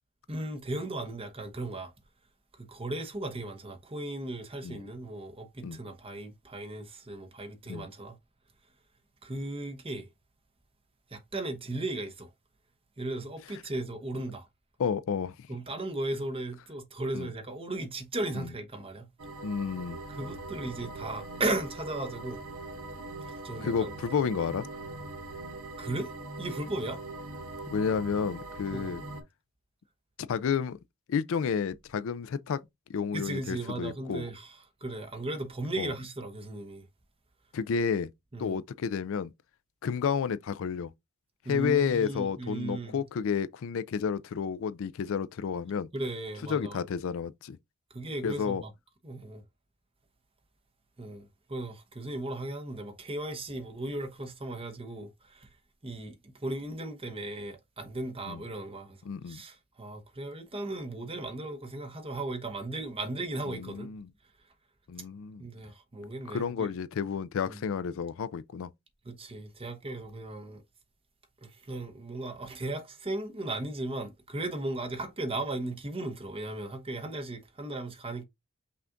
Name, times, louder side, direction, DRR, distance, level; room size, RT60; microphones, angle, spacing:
voice 1, 0.3-1.9 2.6-8.2 9.2-10.1 11.1-12.3 13.0-14.5 15.5-19.1 20.1-22.4 23.2-23.9 25.8-26.1 26.4-27.0 28.7-28.9 33.1-36.9 38.3-38.6 41.4-43.0 45.9-46.8 47.9-48.7 49.0-49.4 51.0-55.5 55.8-59.0 59.3-63.9 65.4-66.7 67.5-67.6 69.0-70.6 71.4-78.2, right 2 dB, 25° right, 1.0 m, -36 dB
voice 2, 14.8-15.3 17.1-17.3 18.3-18.5 19.4-20.0 23.6-24.7 27.7-29.0 30.3-30.8 31.1-32.6 32.9-34.3 35.8-35.9 37.5-38.1 38.4-39.3 39.8-40.9 41.5-45.9 46.5-47.6 48.2-48.6 58.3-58.4 59.1-59.4 63.5-64.1 64.9-65.5 66.3-68.7, left 6 dB, 65° left, 0.4 m, -31 dB
sound 1, 19.2-29.2, right 2 dB, 70° right, 1.2 m, -41 dB
5.7 x 2.4 x 3.7 m
head